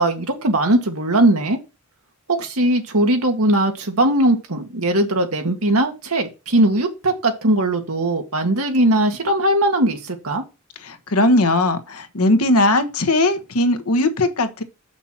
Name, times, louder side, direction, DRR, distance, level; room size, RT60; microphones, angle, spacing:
voice 1, 0.0-1.6 2.3-10.4, right 1 dB, 85° right, 2.0 m, -19 dB
voice 2, 10.8-14.6, left 2 dB, 90° left, 1.3 m, -18 dB
7.3 x 6.0 x 5.8 m
head